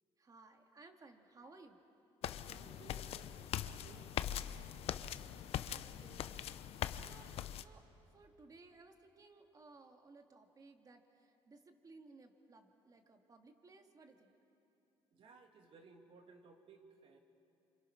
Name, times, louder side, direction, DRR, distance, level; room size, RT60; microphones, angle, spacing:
voice 1, 0.2-1.8 5.3-7.8 8.1-14.3, right 3 dB, 35° right, 5 dB, 2.2 m, -60 dB
sound 1, 2.2-7.6, left 11 dB, 65° left, 0.7 m, -42 dB
voice 2, 2.4-4.1 15.1-17.2, right 4 dB, 55° right, 4 dB, 2.6 m, -60 dB
28.0 x 25.5 x 6.0 m, 2.7 s
cardioid pair, 100°, 11 cm